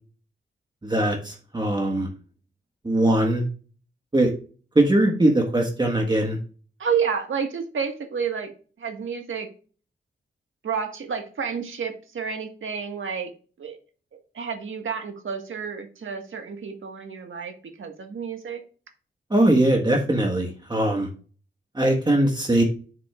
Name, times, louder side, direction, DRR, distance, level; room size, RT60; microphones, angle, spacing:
voice 1, 0.8-2.1 2.8-3.4 4.1-4.3 4.7-6.4 19.3-21.1 21.7-22.6, right 1 dB, 20° right, 1 dB, 1.5 m, -21 dB
voice 2, 6.8-8.5 8.8-9.5 10.6-13.3 13.6-13.8 14.3-18.6, right 6 dB, 85° right, 4 dB, 1.7 m, -30 dB
10.0 x 7.5 x 2.5 m, 0.38 s
wide cardioid pair, 120°, 20 cm